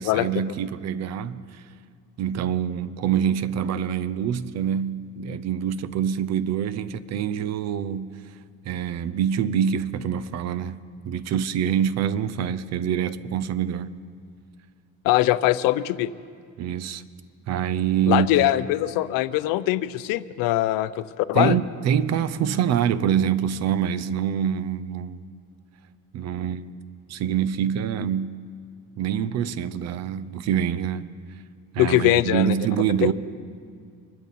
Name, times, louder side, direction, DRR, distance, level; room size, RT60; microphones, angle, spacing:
voice 1, 0.0-1.6 2.2-8.1 8.7-10.8 11.0-13.9 16.6-17.0 17.5-18.3 21.3-25.3 26.1-26.8 27.1-28.3 29.0-31.1 31.7-33.1, right 9 dB, 50° right, 0.6 m, -25 dB
voice 2, 15.0-16.1 18.1-21.6 31.8-32.5, left 15 dB, 80° left, 0.6 m, -22 dB
25.0 x 12.0 x 4.2 m
cardioid pair, 140°, 33 cm